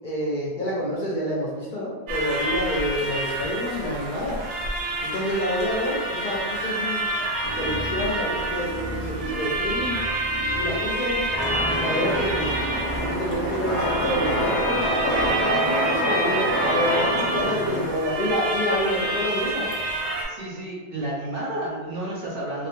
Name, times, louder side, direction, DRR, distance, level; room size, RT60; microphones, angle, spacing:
voice 1, 0.0-4.4 5.0-7.0 7.5-10.0 10.5-11.2 11.8-12.6 13.0-19.7, equal, 55° left, -5 dB, 0.7 m, -28 dB
sound 1, 2.1-20.3, right 1 dB, 85° right, 0.9 m, -28 dB
sound 2, 7.4-15.3, equal, 5° left, 0.7 m, -36 dB
sound 3, 11.3-17.9, equal, 35° right, 0.4 m, -26 dB
voice 2, 20.3-22.7, right 1 dB, 60° right, -4 dB, 0.7 m, -31 dB
2.3 x 2.1 x 3.0 m, 1.3 s
omnidirectional pair, 1.2 m